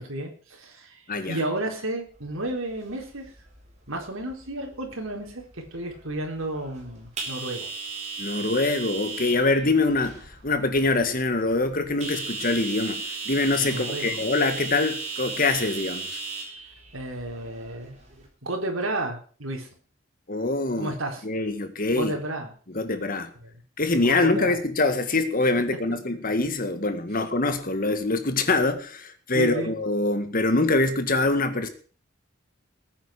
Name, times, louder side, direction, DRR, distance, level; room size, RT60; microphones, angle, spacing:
voice 1, 0.0-3.3 3.9-7.7 13.6-14.3 16.9-18.0 18.4-19.7 20.8-21.2 21.9-22.5 23.4-23.5 24.0-24.6 29.3-29.7, right 1 dB, 70° right, 1 dB, 4.2 m, -32 dB
voice 2, 1.1-1.4 8.2-13.0 13.3-16.1 20.3-20.9 21.2-22.1 22.7-23.3 23.8-31.7, left 2 dB, 40° left, 9 dB, 1.9 m, -24 dB
sound 1, 2.1-18.3, right 3 dB, 35° right, 4.2 m, -37 dB
20.5 x 9.3 x 5.1 m, 0.41 s
head